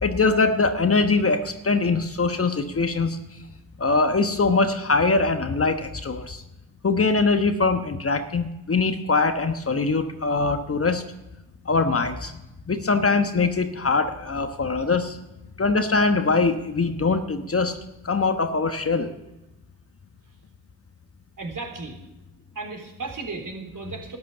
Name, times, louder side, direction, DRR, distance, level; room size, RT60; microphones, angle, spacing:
voice 1, 0.0-3.2 3.8-6.4 6.8-11.0 11.7-12.3 12.7-15.2 15.6-17.7 18.0-19.1, left 3 dB, 30° left, 8 dB, 1.2 m, -22 dB
voice 2, 21.4-21.9 22.6-24.2, right 3 dB, 45° right, 2 dB, 3.8 m, -34 dB
12.5 x 9.4 x 6.8 m, 0.98 s
hypercardioid pair, 40°, 43 cm